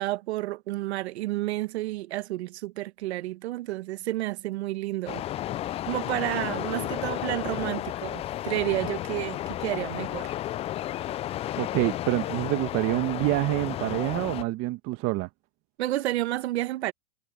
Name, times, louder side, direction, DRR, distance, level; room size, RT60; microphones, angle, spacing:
voice 1, 0.0-5.2 5.9-10.3 15.8-16.9, right 16 dB, 75° right, 1.4 m, -30 dB
sound 1, 5.1-14.4, left 13 dB, 20° left, 0.3 m, -33 dB
voice 2, 11.6-15.3, right 20 dB, 45° right, 1.5 m, -27 dB
hypercardioid pair, 120°, 33 cm